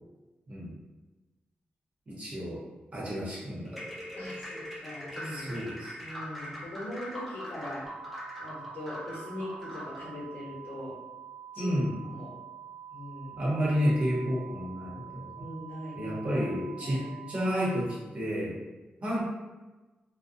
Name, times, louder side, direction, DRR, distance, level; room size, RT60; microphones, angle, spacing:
voice 1, 2.1-2.6 2.9-3.8 5.3-5.9 11.6-11.9 13.4-15.3 15.9-18.6 19.0-19.2, equal, 35° right, -6 dB, 0.8 m, -30 dB
sound 1, 3.7-10.1, equal, ahead, 0.5 m, -42 dB
voice 2, 4.2-5.5 6.0-7.9 8.4-11.0 11.5-11.7 12.1-12.3 12.9-13.4 15.3-16.4 16.8-17.1, left 1 dB, 65° left, -6 dB, 0.9 m, -41 dB
sound 2, 7.8-17.9, right 8 dB, 65° right, 0.4 m, -46 dB
2.6 x 2.1 x 2.5 m, 1.2 s
wide cardioid pair, 135°, 3 cm